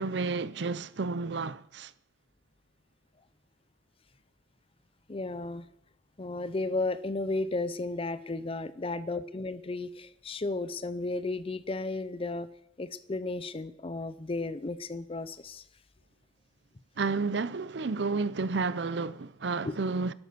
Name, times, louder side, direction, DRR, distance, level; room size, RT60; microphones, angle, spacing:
voice 1, 0.0-1.9 17.0-20.1, right 4 dB, 70° right, 0.6 m, -31 dB
voice 2, 5.1-5.6 6.2-12.5 12.8-15.6 19.6-19.8, left 2 dB, 30° left, 0.6 m, -34 dB
12.5 x 11.5 x 6.8 m
head